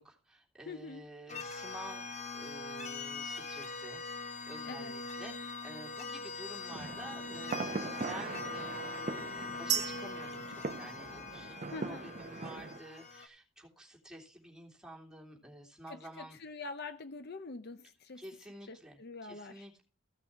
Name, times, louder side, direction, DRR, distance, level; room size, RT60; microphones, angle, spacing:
voice 1, 0.0-16.4 18.1-19.8, right 1 dB, 5° right, 3.1 m, -50 dB
voice 2, 0.7-1.0 4.6-4.9 11.7-12.1 15.9-18.2 18.7-19.6, left 3 dB, 50° left, 0.7 m, -45 dB
sound 1, 1.3-13.3, left 4 dB, 35° left, 1.3 m, -42 dB
sound 2, 6.7-12.8, right 4 dB, 35° right, 0.6 m, -41 dB
sound 3, 9.7-11.6, right 10 dB, 55° right, 0.9 m, -37 dB
15.5 x 6.0 x 4.6 m
head